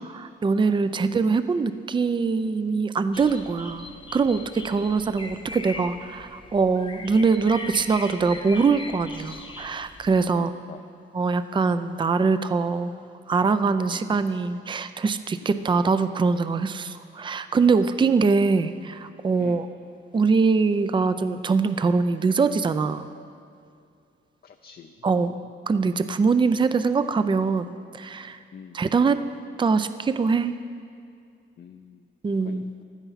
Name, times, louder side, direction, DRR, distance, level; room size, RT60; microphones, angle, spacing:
voice 1, 0.1-10.5 11.1-12.9 13.3-19.7 20.1-23.1 25.0-25.3 25.7-28.4 28.7-29.2 29.6-30.5 32.2-32.7, right 4 dB, 25° right, 12 dB, 0.4 m, -23 dB
sound 1, 3.1-10.3, left 3 dB, 25° left, 0.9 m, -40 dB
voice 2, 10.3-10.8 13.9-14.1 15.4-15.6 19.4-19.7 24.4-25.5 28.5-28.8 31.6-32.1 32.4-32.8, left 7 dB, 50° left, 5 dB, 0.6 m, -45 dB
16.0 x 13.0 x 5.7 m, 2.4 s
wide cardioid pair, 170°, 21 cm